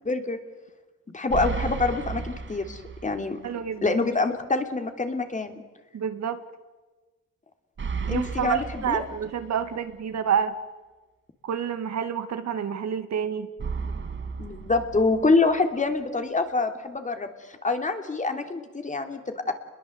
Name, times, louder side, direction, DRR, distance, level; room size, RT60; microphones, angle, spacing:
voice 1, 0.0-0.4 1.1-3.4 3.8-5.6 8.1-9.0 14.4-19.5, left 3 dB, 25° left, 6 dB, 3.2 m, -26 dB
sound 1, 1.3-3.3 3.7-3.8 7.8-9.8 13.6-15.6, right 5 dB, 40° right, 2.2 m, -34 dB
voice 2, 3.4-3.9 5.9-6.4 8.1-10.5 11.4-13.5, right 8 dB, 60° right, 9 dB, 2.2 m, -28 dB
28.0 x 22.0 x 8.0 m, 1.2 s
cardioid pair, 90°, 30 cm